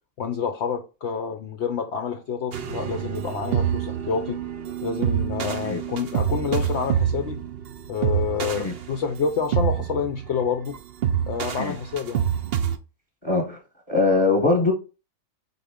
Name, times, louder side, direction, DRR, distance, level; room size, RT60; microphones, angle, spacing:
voice 1, 0.2-4.4 4.8-7.4 7.9-10.8 11.3-12.3, left 6 dB, 65° left, 0.7 m, -28 dB
sound 1, 2.5-12.8, right 9 dB, 60° right, 0.6 m, -27 dB
voice 2, 13.2-13.6 13.9-14.7, left 3 dB, 20° left, 1.1 m, -21 dB
4.1 x 3.6 x 3.5 m
omnidirectional pair, 1.4 m